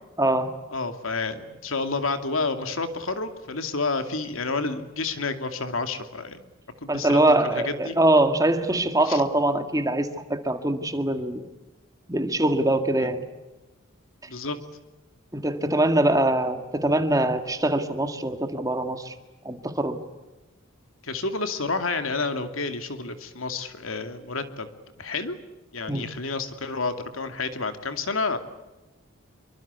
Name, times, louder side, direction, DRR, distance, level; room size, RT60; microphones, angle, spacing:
voice 1, 0.2-0.5 6.9-11.4 12.1-13.2 15.3-19.1 19.4-20.0 25.9-26.1, right 1 dB, 15° right, 8 dB, 2.0 m, -23 dB
voice 2, 0.7-6.5 6.8-7.2 7.5-8.0 9.1-9.2 13.0-13.1 14.3-14.6 21.0-24.7 25.0-25.4 25.7-28.4, left 3 dB, 80° left, 8 dB, 2.5 m, -29 dB
27.0 x 24.0 x 8.3 m, 1.1 s
head